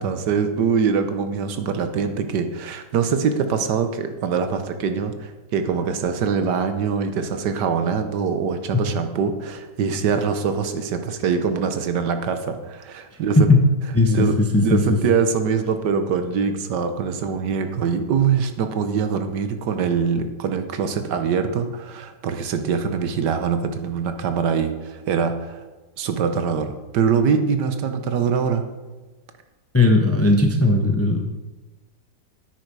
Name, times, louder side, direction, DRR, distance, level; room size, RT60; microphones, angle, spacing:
voice 1, 0.0-13.5 14.1-25.6 26.0-28.6, right 6 dB, 85° right, 8 dB, 1.6 m, -23 dB
voice 2, 13.9-14.8 29.7-31.2, left 2 dB, 15° left, 3 dB, 0.5 m, -17 dB
9.7 x 9.1 x 4.7 m, 1.2 s
omnidirectional pair, 1.8 m